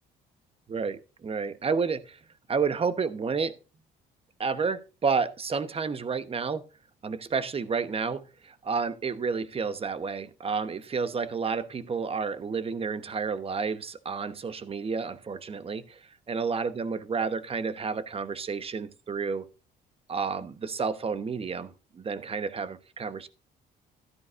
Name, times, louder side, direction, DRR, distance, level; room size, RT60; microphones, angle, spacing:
voice 1, 0.7-2.2 2.5-3.5 4.4-6.6 7.0-19.4 20.1-23.3, right 5 dB, 30° right, 12 dB, 1.0 m, -30 dB
12.5 x 11.0 x 2.5 m, 0.32 s
cardioid pair, 95°, 19 cm